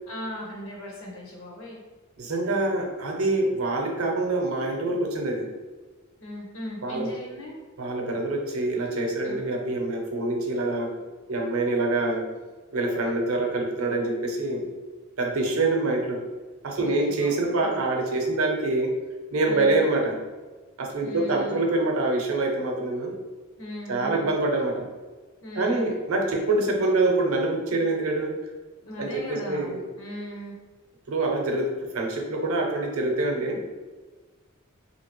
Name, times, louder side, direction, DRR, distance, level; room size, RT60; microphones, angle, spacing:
voice 1, 0.1-1.8 6.2-7.6 9.2-9.4 16.8-17.8 19.4-19.8 21.0-21.7 23.6-24.3 25.4-25.9 28.8-30.6, equal, 65° left, -1 dB, 0.9 m, -38 dB
voice 2, 2.2-5.5 6.8-7.1 7.8-10.9 11.3-12.2 12.7-14.6 15.2-16.3 16.6-18.9 19.3-20.2 20.8-23.1 23.9-24.9 25.6-28.3 29.0-29.8 31.1-33.6, right 2 dB, 75° right, 2 dB, 0.6 m, -25 dB
2.9 x 2.8 x 2.9 m, 1.3 s
head